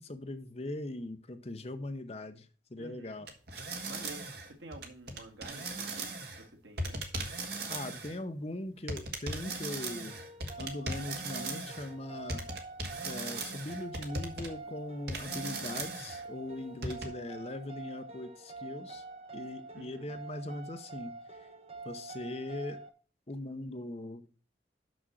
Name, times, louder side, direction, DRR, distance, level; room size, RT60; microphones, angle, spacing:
voice 1, 0.0-3.3 7.7-10.2 10.6-12.4 13.0-19.0 19.3-21.1 21.8-22.8 23.3-24.2, left 1 dB, 35° left, 9 dB, 0.8 m, -40 dB
voice 2, 2.8-3.3 3.9-7.2 19.7-20.2, right 2 dB, 80° right, 3 dB, 1.7 m, -50 dB
sound 1, 3.3-6.4 6.8-8.2 8.9-11.9 12.3-14.5 15.1-16.2 16.8-17.1, right 2 dB, 60° right, 1.5 m, -38 dB
sound 2, 10.1-22.9, right 3 dB, 30° right, 0.9 m, -46 dB
6.2 x 6.1 x 6.2 m, 0.38 s
head